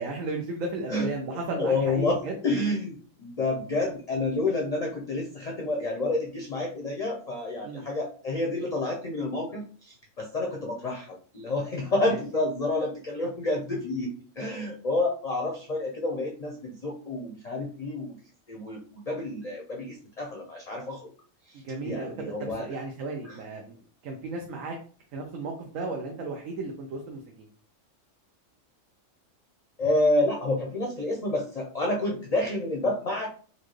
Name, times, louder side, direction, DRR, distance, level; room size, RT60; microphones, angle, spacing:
voice 1, 0.0-2.4 7.6-7.9 12.0-12.2 21.5-23.8 24.0-24.8 25.1-27.5, right 3 dB, 85° right, 1 dB, 1.1 m, -34 dB
voice 2, 1.6-2.2 2.4-18.1 18.5-18.8 19.1-21.1 21.8-22.7 23.2-23.4 29.8-33.3, left 2 dB, 45° left, 0 dB, 0.5 m, -29 dB
4.2 x 2.4 x 3.1 m, 0.41 s
omnidirectional pair, 1.3 m